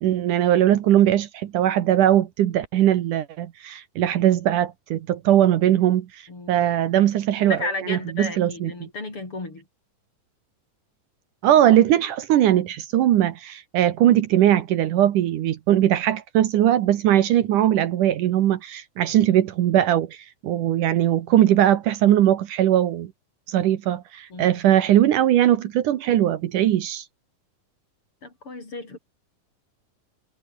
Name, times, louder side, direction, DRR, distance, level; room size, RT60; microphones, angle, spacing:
voice 1, 0.0-8.7 11.4-23.1 23.5-27.0, right 12 dB, 70° right, 2.7 m, -20 dB
voice 2, 6.3-6.7 7.4-9.6 24.3-24.6 28.2-29.0, left 3 dB, 40° left, 7.1 m, -33 dB
omnidirectional pair, 3.9 m